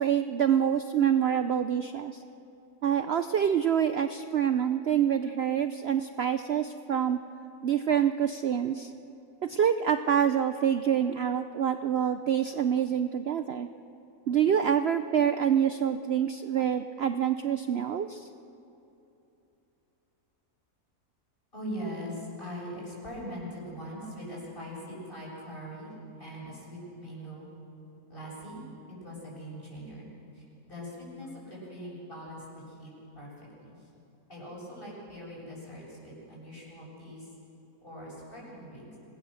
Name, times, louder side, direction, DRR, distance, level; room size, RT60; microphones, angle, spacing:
voice 1, 0.0-2.2 2.8-7.2 7.6-8.9 9.4-13.7 14.3-18.3, right 9 dB, 60° right, 9 dB, 0.6 m, -26 dB
voice 2, 21.5-25.9 26.2-27.5 28.1-28.6 29.0-30.1 30.3-33.3 33.6-33.8 34.3-37.3 37.8-39.0, equal, 35° left, -5 dB, 7.2 m, -41 dB
26.0 x 19.5 x 6.4 m, 2.9 s
omnidirectional pair, 1.7 m